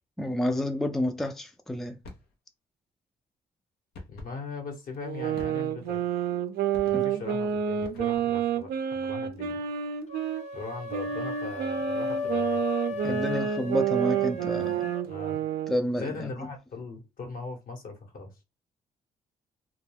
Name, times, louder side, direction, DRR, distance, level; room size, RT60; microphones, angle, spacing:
voice 1, 0.2-2.0 6.9-7.0 13.0-14.9 15.7-16.3, left 1 dB, ahead, 0.4 m, -29 dB
sound 1, 2.0-2.3 3.9-4.4 5.4-5.9 6.7-7.2 7.8-8.4, left 2 dB, 85° left, 0.7 m, -46 dB
voice 2, 4.1-6.0 6.9-9.6 10.5-12.6 12.9-13.3 15.1-15.4 15.9-18.3, left 3 dB, 65° left, 1.1 m, -39 dB
sound 2, 5.0-10.4 10.9-15.8, right 9 dB, 85° right, 0.4 m, -29 dB
sound 3, 10.1-15.0, left 4 dB, 45° left, 0.7 m, -35 dB
2.3 x 2.2 x 3.2 m
cardioid pair, 75°, 16 cm